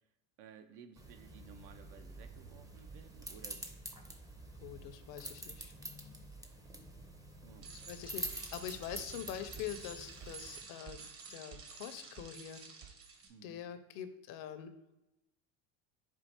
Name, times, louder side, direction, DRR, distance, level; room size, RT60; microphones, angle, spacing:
voice 1, 0.4-3.6 4.6-4.7 7.4-7.7 13.3-13.6, right 6 dB, 70° right, 9 dB, 0.6 m, -56 dB
sound 1, 1.0-10.6, right 1 dB, 10° right, 0.5 m, -47 dB
voice 2, 4.6-5.7 7.7-12.6 13.4-14.8, left 10 dB, 55° left, 10 dB, 0.6 m, -44 dB
Bicycle, 7.6-13.3, right 5 dB, 35° right, 0.8 m, -50 dB
4.5 x 2.5 x 4.2 m, 0.91 s
supercardioid pair, 100°, 40 cm